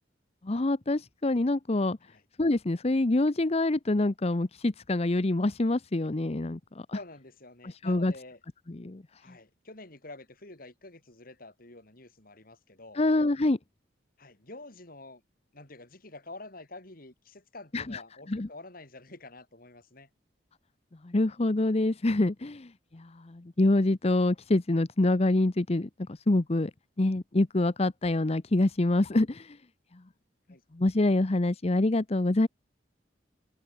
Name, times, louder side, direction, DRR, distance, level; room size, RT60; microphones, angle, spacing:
voice 1, 0.4-2.0 2.4-7.0 7.6-8.1 8.7-9.0 13.0-13.6 17.7-18.0 18.3-18.5 21.0-26.7 27.0-29.6 30.7-32.5, left 2 dB, 35° left, 0.8 m, -26 dB
voice 2, 6.9-8.4 9.2-13.0 14.2-15.2 15.5-20.1 22.4-22.6 30.5-30.6, left 2 dB, 50° left, 4.3 m, -48 dB
head